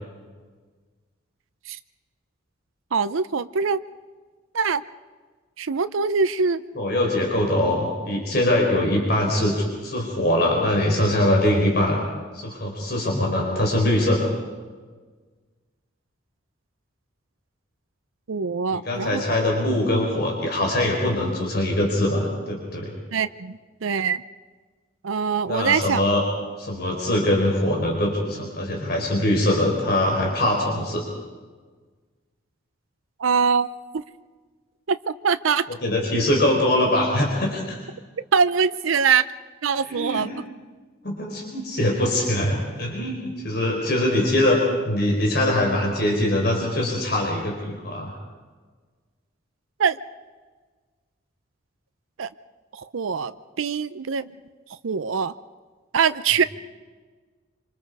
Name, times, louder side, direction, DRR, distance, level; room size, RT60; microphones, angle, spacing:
voice 1, 2.9-3.8 4.5-4.8 5.6-6.6 18.3-19.2 23.1-24.2 25.0-26.0 33.2-33.7 33.9-34.0 34.9-35.6 38.3-39.2 39.6-40.4 49.8-50.0 52.2-52.3 52.7-53.3 53.6-54.4 54.8-55.3 55.9-56.4, right 6 dB, 90° right, 12 dB, 0.6 m, -23 dB
voice 2, 6.8-12.0 12.3-14.3 18.7-22.9 25.5-26.2 26.6-31.0 35.8-37.8 39.9-40.3 41.0-48.1, left 1 dB, 50° left, -1 dB, 4.2 m, -22 dB
26.5 x 25.5 x 4.8 m, 1.4 s
head